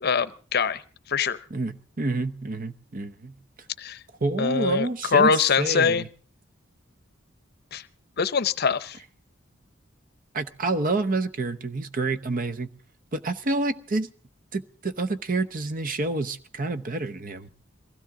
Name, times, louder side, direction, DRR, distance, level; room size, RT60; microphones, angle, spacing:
voice 1, 0.0-0.8 1.1-1.4 3.8-4.0 4.4-6.0 7.7-7.8 8.2-9.0, left 6 dB, 55° left, 15 dB, 0.7 m, -23 dB
voice 2, 1.5-3.3 4.2-6.1 10.3-12.7 13.1-14.1 14.5-17.5, right 2 dB, 45° right, 11 dB, 0.8 m, -28 dB
23.0 x 16.0 x 3.7 m, 0.40 s
head